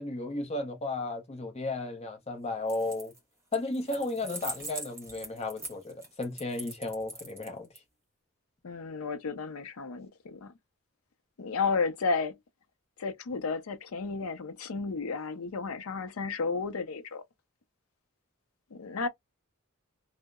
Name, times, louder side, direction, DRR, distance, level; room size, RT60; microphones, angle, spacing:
voice 1, 0.0-3.1 3.5-7.7, left 2 dB, 30° left, 0.7 m, -34 dB
sound 1, 2.6-3.2 3.5-7.8, right 1 dB, 15° right, 1.1 m, -42 dB
voice 2, 8.6-10.5 11.4-12.4 13.0-17.2 18.7-19.1, left 4 dB, 70° left, 0.5 m, -32 dB
2.7 x 2.0 x 2.3 m
head